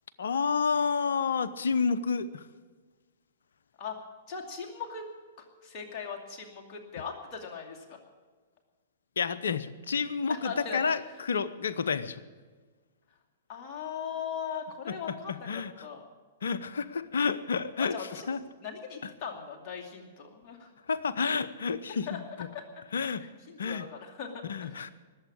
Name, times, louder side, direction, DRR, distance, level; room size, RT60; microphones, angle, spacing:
voice 1, 0.2-2.5 9.2-12.2 14.9-15.7 16.4-18.4 19.0-19.1 20.9-22.2 22.9-23.2 23.6-23.9 24.5-24.9, left 5 dB, 70° left, 15 dB, 0.8 m, -30 dB
voice 2, 4.3-5.1 5.4-8.0 10.3-10.8 13.5-16.0 17.8-18.3 18.6-20.8 21.9-22.2 22.5-22.6 23.0-24.8, left 6 dB, 35° left, 1 dB, 2.5 m, -39 dB
19.5 x 8.0 x 8.6 m, 1.4 s
figure-of-eight pair, 110°, 0 cm